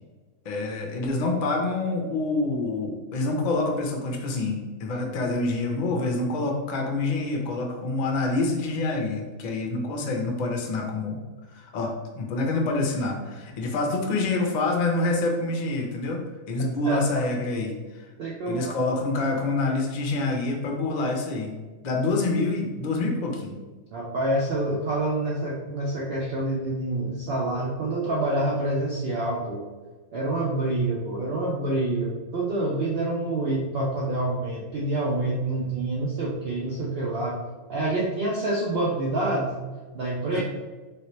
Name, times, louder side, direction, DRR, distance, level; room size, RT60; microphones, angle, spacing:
voice 1, 0.4-11.2 11.5-18.1 18.5-21.5 21.8-23.6 40.3-40.4, left 2 dB, 55° left, 1 dB, 0.5 m, -27 dB
voice 2, 16.8-17.2 18.2-18.9 23.9-29.6 30.1-37.4 37.7-39.5 39.9-40.4, right 2 dB, 60° right, -4 dB, 0.7 m, -27 dB
3.2 x 2.8 x 3.0 m, 1.3 s
omnidirectional pair, 1.4 m